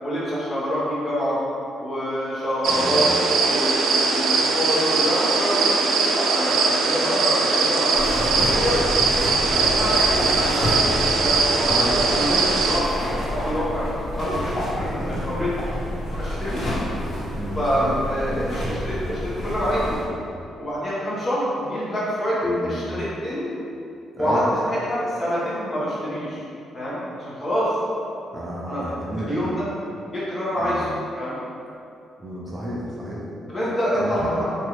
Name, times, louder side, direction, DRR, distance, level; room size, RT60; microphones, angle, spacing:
voice 1, 0.0-1.4 1.8-5.8 6.1-8.8 9.5-10.9 11.2-12.9 13.2-13.9 14.2-15.5 16.2-16.6 17.5-18.3 18.7-20.0 20.6-23.5 24.2-24.4 24.7-26.4 26.7-27.7 28.7-28.8 29.2-29.7 30.1-31.4 33.5-34.4, equal, 30° left, -9 dB, 1.2 m, -26 dB
sound 1, 2.6-12.8, right 4 dB, 80° right, 0.3 m, -21 dB
voice 2, 2.7-3.1 11.6-12.0 15.1-15.4 17.3-18.0 18.3-18.5 22.4-23.0 24.1-24.5 28.3-29.5 30.6-30.8 32.2-33.3 33.9-34.4, right 1 dB, 25° right, -5 dB, 0.5 m, -32 dB
sound 2, 7.9-20.0, left 1 dB, 60° left, 1.0 m, -29 dB
2.9 x 2.5 x 3.1 m, 2.6 s
cardioid pair, 90°, 0 cm